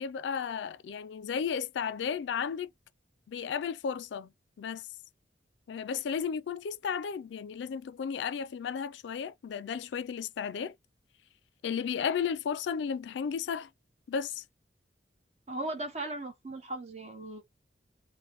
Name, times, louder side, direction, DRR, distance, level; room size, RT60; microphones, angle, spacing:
voice 1, 0.0-2.7 3.3-4.3 4.6-4.9 5.7-10.7 11.6-13.7 14.1-14.4, left 7 dB, 85° left, 0.3 m, -34 dB
voice 2, 15.5-17.4, right 2 dB, 40° right, 1.0 m, -37 dB
3.4 x 2.1 x 3.9 m
head